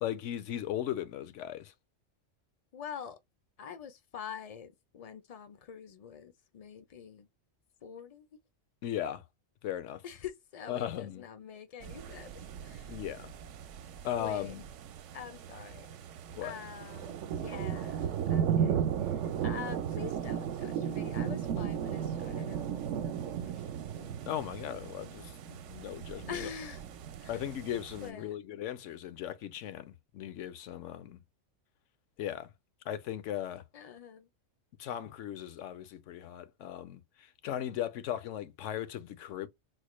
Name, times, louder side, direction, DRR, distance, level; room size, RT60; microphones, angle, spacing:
voice 1, 0.0-1.7 8.8-9.2 9.6-10.0 10.7-11.2 12.9-13.3 14.0-14.6 16.3-16.6 24.2-26.5 27.3-31.2 32.2-32.5 32.9-33.6 34.8-39.5, left 11 dB, 75° left, 0.9 m, -37 dB
voice 2, 2.7-3.2 3.6-7.3 7.8-8.3 10.0-13.0 14.2-14.5 15.1-15.9 16.4-24.2 26.3-26.8 27.2-27.4 28.0-28.3 33.7-34.3, left 7 dB, 55° left, 0.4 m, -45 dB
sound 1, 11.8-28.1, right 8 dB, 75° right, 0.9 m, -36 dB
4.1 x 2.1 x 3.0 m
omnidirectional pair, 1.3 m